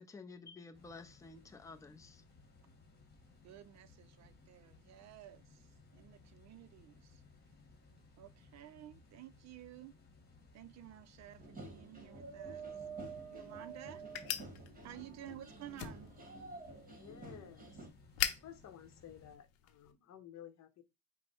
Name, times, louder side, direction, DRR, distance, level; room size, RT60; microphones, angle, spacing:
voice 1, 0.0-2.2, left 4 dB, 10° left, 0.5 m, -52 dB
sound 1, 0.7-19.4, left 3 dB, 25° left, 1.4 m, -62 dB
voice 2, 3.4-7.2 8.2-10.0 10.5-12.7 13.0-14.0 14.8-16.2, right 12 dB, 50° right, 0.4 m, -53 dB
sound 2, 11.4-17.9, right 4 dB, 25° right, 1.4 m, -49 dB
sound 3, 12.8-19.9, left 11 dB, 80° left, 0.7 m, -44 dB
voice 3, 16.7-17.9 18.2-20.8, left 10 dB, 50° left, 0.8 m, -54 dB
5.1 x 2.1 x 4.3 m
cardioid pair, 100°, 35 cm